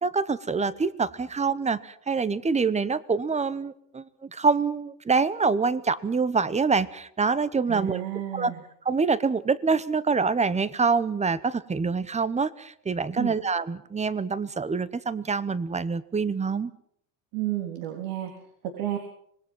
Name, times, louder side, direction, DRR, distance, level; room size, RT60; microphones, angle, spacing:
voice 1, 0.0-8.0 8.3-8.5 8.8-16.7, right 4 dB, 15° right, 18 dB, 0.9 m, -26 dB
voice 2, 7.7-8.6 13.2-13.4 17.3-18.3 18.6-19.0, right 13 dB, 70° right, 4 dB, 3.6 m, -31 dB
25.5 x 20.0 x 6.1 m, 0.68 s
supercardioid pair, 125°, 49 cm